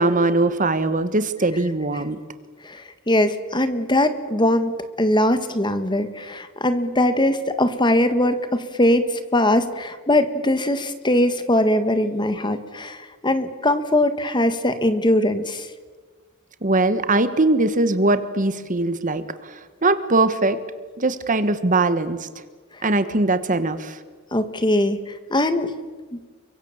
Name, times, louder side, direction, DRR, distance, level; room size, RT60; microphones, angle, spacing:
voice 1, 0.0-2.2 16.6-19.5 19.8-20.6 21.0-22.3 22.8-24.0, right 2 dB, 40° right, 11 dB, 1.5 m, -21 dB
voice 2, 2.6-15.7 24.3-25.7, left 1 dB, 20° left, 10 dB, 1.6 m, -21 dB
30.0 x 24.0 x 7.3 m, 1.4 s
head